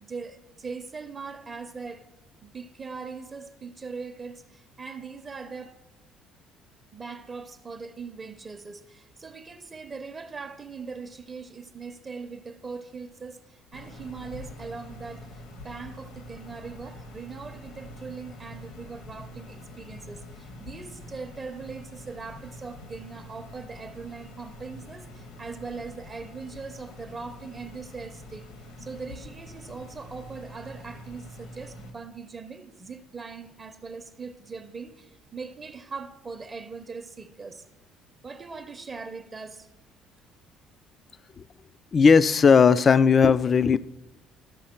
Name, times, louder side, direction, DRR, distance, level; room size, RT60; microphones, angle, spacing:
voice 1, 0.0-2.1 2.4-5.8 6.9-28.5 28.8-37.6 38.2-39.7, right 4 dB, 30° right, 0.6 m, -40 dB
sound 1, 13.7-31.9, left 1 dB, 80° left, 1.4 m, -45 dB
voice 2, 41.9-43.8, left 5 dB, 35° left, 0.3 m, -17 dB
13.0 x 5.7 x 4.3 m
cardioid pair, 105°, 0 cm